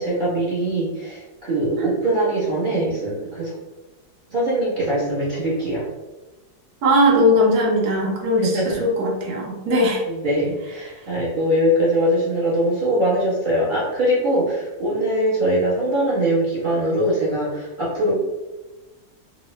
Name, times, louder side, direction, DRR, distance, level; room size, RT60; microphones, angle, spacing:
voice 1, 0.0-3.5 4.3-5.9 8.4-8.8 10.1-18.1, right 1 dB, 40° right, -8 dB, 0.7 m, -22 dB
voice 2, 6.8-10.0, left 1 dB, 60° right, -2 dB, 1.1 m, -19 dB
3.7 x 2.1 x 3.0 m, 1.1 s
omnidirectional pair, 2.1 m